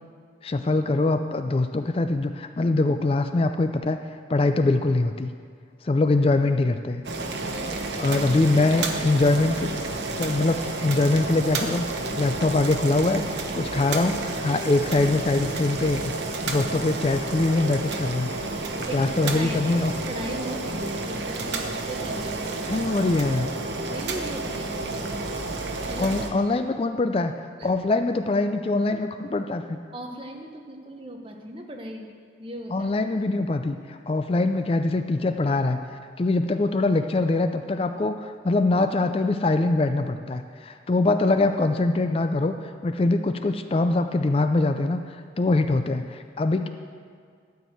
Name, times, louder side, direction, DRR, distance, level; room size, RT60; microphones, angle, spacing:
voice 1, 0.4-4.0 4.3-5.3 5.8-7.0 8.0-9.7 10.2-16.0 16.5-18.3 18.7-19.9 22.6-23.5 26.0-27.3 27.6-29.8 32.7-35.8 36.2-42.6 42.8-45.0 45.4-46.7, left 2 dB, 30° left, 8 dB, 0.4 m, -23 dB
Boiling, 7.0-26.3, right 3 dB, 75° right, 1.0 m, -30 dB
voice 2, 7.5-8.2 18.5-23.1 23.9-25.3 25.6-26.1 27.6-27.7 29.9-32.1 32.4-33.0, right 1 dB, 30° right, 2 dB, 0.9 m, -38 dB
12.5 x 4.6 x 7.8 m, 2.1 s
head